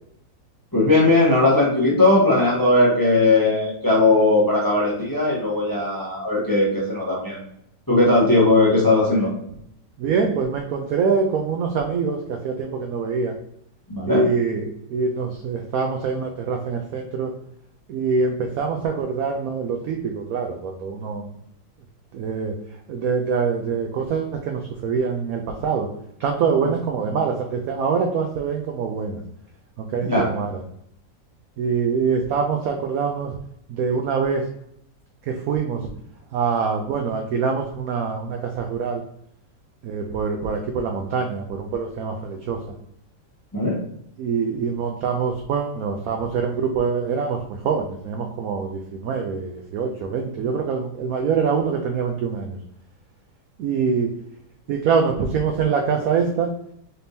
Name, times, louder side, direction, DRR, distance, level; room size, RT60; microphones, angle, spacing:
voice 1, 0.7-7.4 7.9-9.3 13.9-14.2 30.0-30.3 43.5-43.8, left 2 dB, 15° left, -5 dB, 0.8 m, -18 dB
voice 2, 10.0-13.3 14.1-17.3 17.9-21.3 22.1-22.6 22.9-25.9 26.2-29.2 29.8-30.6 31.6-33.4 33.7-34.4 35.3-35.8 36.3-39.0 39.8-42.6 44.2-52.6 53.6-54.1 54.7-56.5, right 5 dB, 75° right, 3 dB, 0.8 m, -24 dB
4.3 x 3.4 x 2.7 m, 0.72 s
omnidirectional pair, 2.0 m